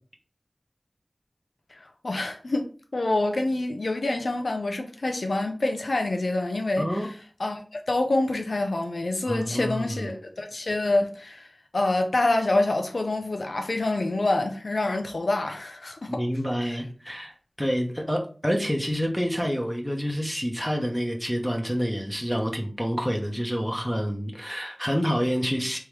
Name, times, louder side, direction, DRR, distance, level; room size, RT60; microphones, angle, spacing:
voice 1, 1.7-7.1 7.4-16.2, left 2 dB, 85° left, 0.7 m, -27 dB
voice 2, 9.3-10.1 16.1-17.3 17.6-25.8, equal, 5° left, 1.0 m, -28 dB
3.5 x 3.0 x 4.6 m
wide cardioid pair, 50°, 0 cm